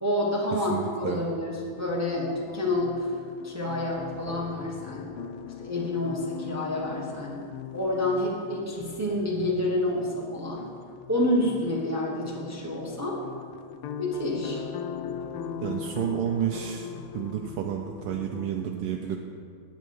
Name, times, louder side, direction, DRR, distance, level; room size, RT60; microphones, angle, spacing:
voice 1, 0.0-3.1 3.4-5.1 5.6-7.4 7.7-10.6 11.1-13.2 14.0-14.6, left 1 dB, 15° right, -4 dB, 0.5 m, -28 dB
voice 2, 0.5-1.2 15.6-16.9 17.1-19.2, right 9 dB, 85° right, 2 dB, 1.5 m, -30 dB
sound 1, 1.8-18.5, left 7 dB, 80° left, 1.5 m, -40 dB
9.5 x 7.7 x 4.7 m, 2.3 s
omnidirectional pair, 2.4 m